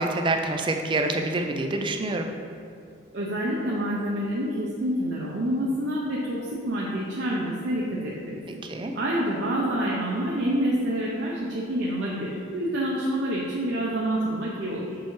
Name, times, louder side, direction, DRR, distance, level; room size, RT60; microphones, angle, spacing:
voice 1, 0.0-2.3 8.7-8.9, right 2 dB, 25° right, 4 dB, 0.3 m, -26 dB
voice 2, 3.1-8.6 8.9-15.0, right 1 dB, 55° right, -5 dB, 0.6 m, -27 dB
6.9 x 4.6 x 3.1 m, 2.4 s
head